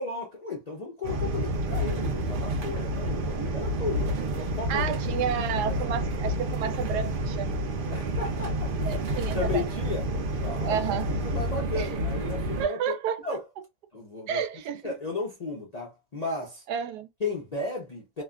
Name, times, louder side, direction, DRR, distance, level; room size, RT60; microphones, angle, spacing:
voice 1, 0.0-5.0 5.6-5.7 7.9-9.0 9.3-10.0 10.4-13.0 13.2-13.4 13.9-14.4 14.7-16.6 17.2-18.2, left 3 dB, 45° left, 0.5 m, -34 dB
sound 1, 1.0-12.6, right 1 dB, 60° right, 0.5 m, -29 dB
voice 2, 4.7-7.6 8.8-9.6 10.7-11.1 11.7-11.9 12.6-13.4 14.3-15.0 16.7-17.1, right 8 dB, 90° right, 1.2 m, -31 dB
3.1 x 2.2 x 2.4 m
omnidirectional pair, 1.7 m